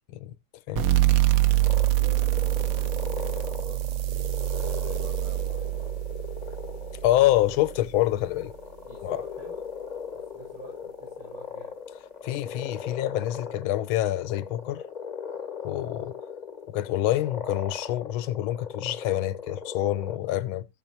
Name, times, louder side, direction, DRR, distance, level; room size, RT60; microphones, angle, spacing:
sound 1, 0.8-8.0, right 15 dB, 60° right, 1.0 m, -25 dB
sound 2, 1.6-20.2, left 6 dB, 35° left, 0.7 m, -39 dB
voice 1, 1.9-5.9 8.9-9.6 10.1-11.7, right 2 dB, 85° right, 6.8 m, -47 dB
voice 2, 7.0-8.5 9.0-9.2 12.2-14.8 15.6-16.1 16.7-20.7, left 14 dB, 90° left, 1.5 m, -26 dB
15.5 x 6.2 x 2.9 m
omnidirectional pair, 2.2 m